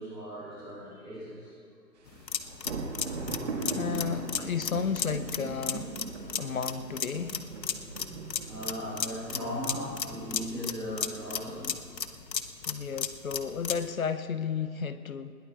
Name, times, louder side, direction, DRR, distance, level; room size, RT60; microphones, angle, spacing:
voice 1, 0.0-1.5 8.4-11.7, equal, ahead, -22 dB, 0.7 m, -37 dB
sound 1, 2.1-13.9, left 7 dB, 80° left, 0.9 m, -35 dB
sound 2, 2.1-10.6, right 3 dB, 45° right, 1.8 m, -39 dB
voice 2, 3.7-5.9 6.2-7.4 12.7-15.3, left 6 dB, 55° left, 12 dB, 0.6 m, -33 dB
21.0 x 17.0 x 2.4 m, 2.3 s
figure-of-eight pair, 150°, 50 cm